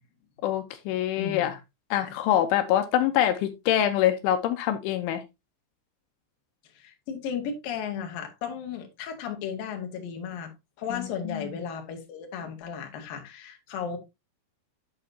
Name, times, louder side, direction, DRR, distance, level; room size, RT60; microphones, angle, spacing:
voice 1, 0.4-1.5 1.9-5.2 10.9-11.6, left 11 dB, 85° left, 3.2 m, -25 dB
voice 2, 1.2-1.6 2.0-2.1 6.7-10.5 10.8-14.0, left 7 dB, 55° left, 3.1 m, -35 dB
8.6 x 8.5 x 2.7 m
omnidirectional pair, 5.5 m